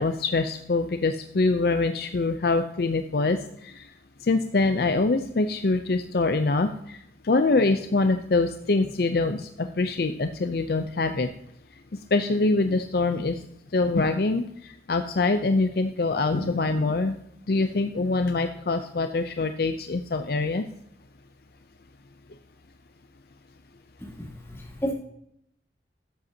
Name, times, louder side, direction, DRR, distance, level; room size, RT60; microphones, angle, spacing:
voice 1, 0.0-3.4 3.6-3.8 4.3-7.0 7.2-11.3 12.1-13.4 13.7-17.2 17.5-20.6, left 3 dB, 55° left, 8 dB, 0.5 m, -24 dB
voice 2, 24.2-24.9, equal, 15° left, -4 dB, 2.9 m, -32 dB
12.5 x 7.8 x 2.8 m, 0.73 s
head